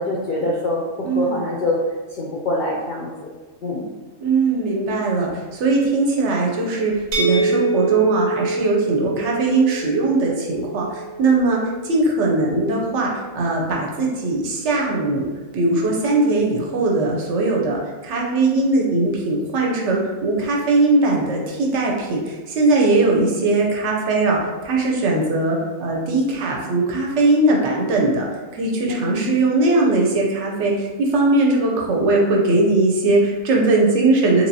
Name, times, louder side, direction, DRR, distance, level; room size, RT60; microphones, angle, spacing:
voice 1, 0.0-1.8 2.2-3.1 3.6-3.9 23.1-23.4 28.9-29.3, left 2 dB, 65° left, -4 dB, 0.5 m, -25 dB
voice 2, 1.0-1.4 4.2-11.6 11.8-15.3 15.5-28.2 28.5-34.5, right 2 dB, 70° right, -2 dB, 0.9 m, -20 dB
sound 1, 7.1-12.9, right 3 dB, 90° right, 1.0 m, -26 dB
3.2 x 3.0 x 2.6 m, 1.3 s
omnidirectional pair, 1.4 m